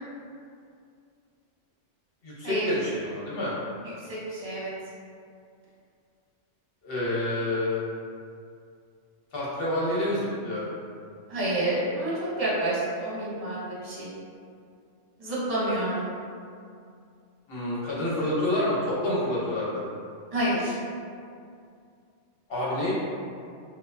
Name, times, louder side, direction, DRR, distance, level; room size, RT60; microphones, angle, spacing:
voice 1, 2.2-3.5 6.8-7.8 9.3-10.6 17.5-19.9 22.5-22.9, left 1 dB, 55° left, -8 dB, 1.1 m, -28 dB
voice 2, 4.1-4.7 11.3-14.1 15.2-16.0 20.3-20.7, right 1 dB, 30° right, -8 dB, 1.0 m, -28 dB
4.4 x 2.3 x 2.6 m, 2.4 s
omnidirectional pair, 1.2 m